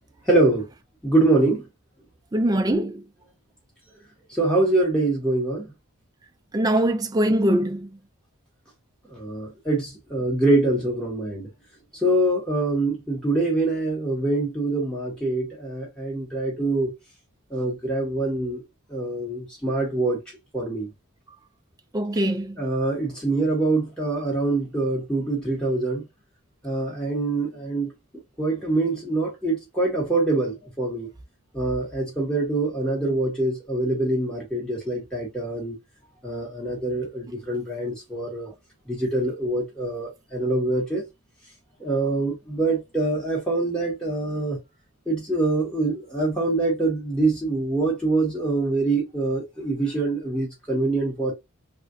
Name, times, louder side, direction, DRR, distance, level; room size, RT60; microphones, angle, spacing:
voice 1, 0.3-0.7 1.0-1.6 4.3-5.7 9.1-11.5 11.9-16.9 17.5-18.6 18.9-20.2 20.5-20.9 22.6-26.0 26.6-27.9 28.4-31.1 31.5-35.8 36.2-38.5 38.9-41.0 41.8-44.6 45.1-51.3, right 2 dB, 5° left, 1.1 m, -24 dB
voice 2, 2.3-3.1 6.5-7.9 21.9-22.6, right 1 dB, 15° right, 0.4 m, -22 dB
3.4 x 2.4 x 2.4 m
head